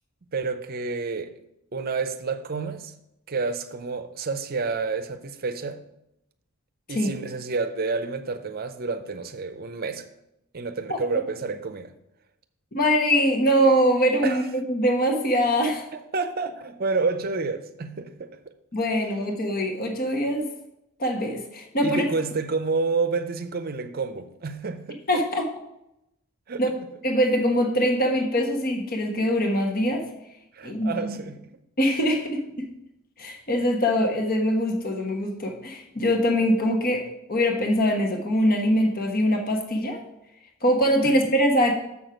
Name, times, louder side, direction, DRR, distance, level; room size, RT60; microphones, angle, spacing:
voice 1, 0.3-1.3 1.7-2.9 3.3-5.8 6.9-10.1 10.5-11.9 14.2-14.4 16.1-18.3 21.8-25.0 26.5-26.6 30.5-31.5 41.0-41.2, right 4 dB, 45° right, 0.6 m, -29 dB
voice 2, 12.7-15.9 18.7-20.5 21.0-22.0 25.1-25.5 26.6-26.7 27.0-30.0 30.6-31.1 31.8-32.7 33.2-40.0 40.6-41.7, equal, 45° left, 1.2 m, -23 dB
7.2 x 6.1 x 5.0 m
head